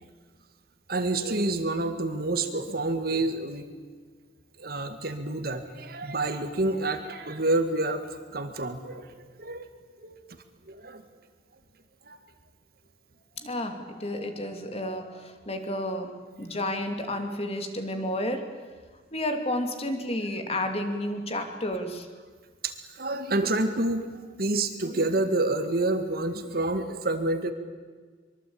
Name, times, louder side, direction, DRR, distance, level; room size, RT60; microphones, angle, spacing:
voice 1, 0.9-3.7 4.6-8.0 8.3-9.1 9.4-9.7 10.0-10.2 10.7-11.0 12.1-12.2 22.6-24.1 24.4-27.5, right 2 dB, 60° right, 8 dB, 2.0 m, -28 dB
voice 2, 13.4-18.5 19.1-22.1, left 1 dB, 35° left, 6 dB, 2.7 m, -31 dB
24.5 x 23.0 x 8.7 m, 1.5 s
head